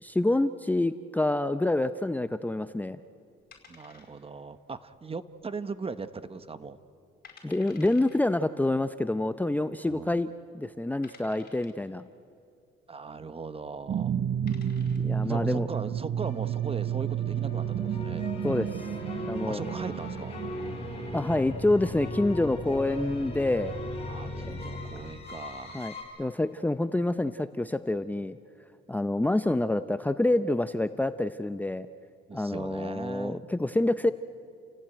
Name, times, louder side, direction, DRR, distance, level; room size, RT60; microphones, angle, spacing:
voice 1, 0.0-3.0 7.4-10.3 10.5-12.0 15.0-15.7 18.4-18.9 19.3-19.7 21.1-23.7 24.4-24.6 25.7-28.4 28.9-31.9 32.3-34.1, left 2 dB, 10° left, 11 dB, 0.6 m, -27 dB
sound 1, 3.5-4.5 4.7-4.8 5.4-5.9 6.2-6.3 6.9-7.0 7.2-8.2 9.3-9.4 10.1-10.2 11.0-11.9 13.7-13.9 14.3-15.1, left 5 dB, 50° left, 5.0 m, -53 dB
voice 2, 3.7-6.8 9.9-10.2 12.9-14.2 15.2-18.3 19.4-20.4 24.1-25.8 32.3-33.4, right 4 dB, 30° right, 12 dB, 1.1 m, -39 dB
sound 2, 13.9-22.3, right 9 dB, 55° right, 0.9 m, -31 dB
sound 3, 16.2-26.0, left 1 dB, 30° left, 6.8 m, -38 dB
30.0 x 17.0 x 9.0 m, 2.5 s
cardioid pair, 90°, 20 cm